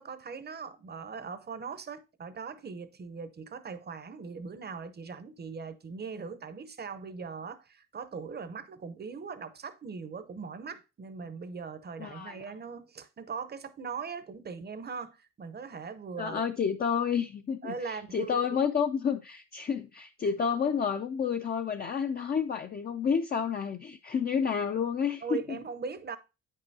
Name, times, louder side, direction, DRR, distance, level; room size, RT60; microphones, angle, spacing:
voice 1, 0.0-16.4 17.6-18.4 20.2-20.3 25.2-26.2, right 5 dB, 35° right, 0.7 m, -40 dB
voice 2, 12.0-12.4 16.2-25.6, left 7 dB, 30° left, 0.5 m, -30 dB
8.9 x 5.5 x 2.7 m
cardioid pair, 120°, 31 cm